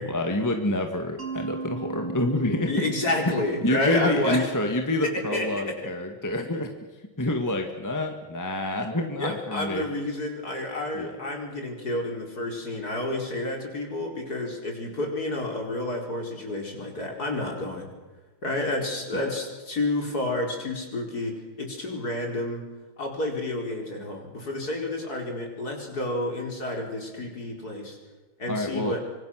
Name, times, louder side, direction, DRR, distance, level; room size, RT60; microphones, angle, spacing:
voice 1, 0.1-2.9 3.3-3.4 3.6-6.8 7.2-9.9 10.9-11.2 19.1-19.3 28.5-29.0, left 1 dB, 10° left, 4 dB, 1.8 m, -28 dB
Mallet percussion, 1.2-6.0, right 4 dB, 35° right, 2.7 m, -38 dB
voice 2, 2.7-4.4 5.3-5.7 9.2-17.9 18.4-22.7 23.0-28.0 28.4-29.0, left 2 dB, 50° left, 1 dB, 5.0 m, -30 dB
25.0 x 25.0 x 6.6 m, 1.2 s
omnidirectional pair, 2.2 m